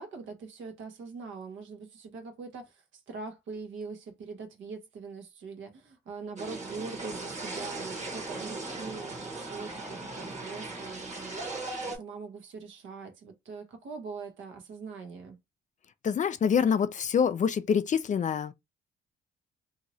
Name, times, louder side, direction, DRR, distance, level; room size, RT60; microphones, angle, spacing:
voice 1, 0.0-11.5 11.8-15.4, right 4 dB, 75° right, 1.1 m, -42 dB
sound 1, 6.4-12.0, right 2 dB, 35° right, 1.3 m, -38 dB
voice 2, 16.0-18.5, left 7 dB, 40° left, 0.4 m, -26 dB
3.0 x 2.7 x 2.7 m
cardioid pair, 90°, 20 cm